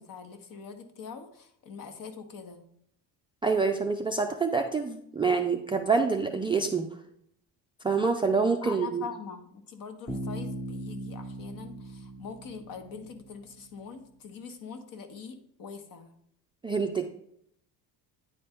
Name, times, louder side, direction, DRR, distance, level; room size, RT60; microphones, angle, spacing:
voice 1, 0.0-2.6 8.6-16.1, left 6 dB, 50° left, 7 dB, 1.1 m, -43 dB
voice 2, 3.4-6.8 7.8-9.0 16.6-17.0, right 4 dB, 15° right, 4 dB, 0.3 m, -26 dB
Bass guitar, 10.1-13.8, right 1 dB, 10° left, 1.1 m, -39 dB
9.4 x 4.3 x 3.5 m, 0.71 s
cardioid pair, 120°, 43 cm